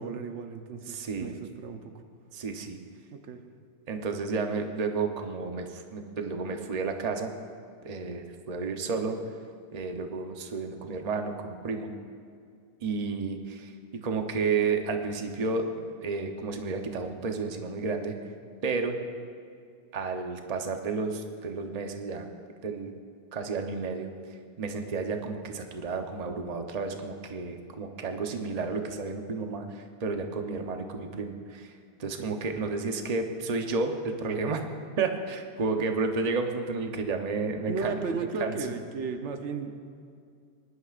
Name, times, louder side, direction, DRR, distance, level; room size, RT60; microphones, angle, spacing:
voice 1, 0.0-2.0 3.1-3.4 32.0-32.4 37.7-39.7, right 4 dB, 80° right, 6 dB, 1.1 m, -35 dB
voice 2, 0.9-1.3 2.3-2.8 3.9-7.3 7.8-9.2 9.7-11.9 12.8-18.2 18.6-19.0 19.9-22.3 22.6-22.9 23.3-24.1 24.6-31.7 32.0-34.6 35.0-38.0 38.4-38.6, right 4 dB, 40° right, 4 dB, 0.8 m, -31 dB
20.0 x 11.5 x 2.5 m, 2.3 s
omnidirectional pair, 1.2 m